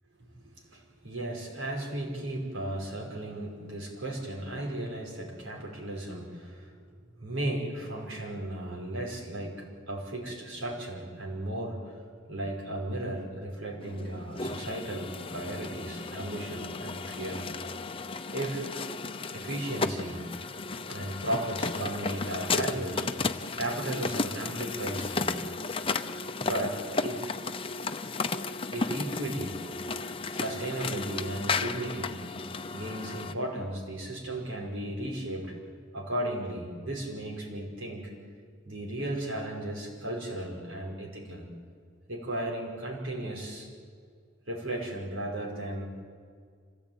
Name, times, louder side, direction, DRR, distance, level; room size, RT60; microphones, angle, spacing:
voice 1, 0.2-6.7 7.2-12.0 12.3-17.5 18.3-18.7 19.3-20.3 20.9-23.1 23.5-25.4 26.4-27.3 28.7-29.6 30.3-32.2 32.7-35.5 35.9-38.1 38.7-41.5 42.1-43.7 44.5-45.9, right 1 dB, 80° right, -1 dB, 5.5 m, -35 dB
sound 1, 13.8-33.3, left 4 dB, 25° left, 0.7 m, -34 dB
26.0 x 17.5 x 9.1 m, 2.1 s
head